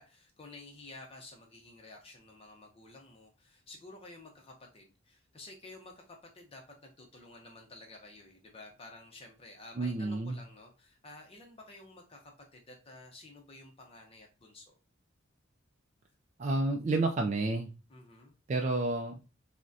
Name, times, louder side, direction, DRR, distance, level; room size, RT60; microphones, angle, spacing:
voice 1, 0.0-14.7 17.9-18.3, left 2 dB, 30° left, 2 dB, 0.6 m, -52 dB
voice 2, 9.8-10.4 16.4-17.7 18.5-19.2, right 2 dB, 35° right, 3 dB, 0.4 m, -30 dB
6.0 x 2.1 x 2.6 m, 0.32 s
head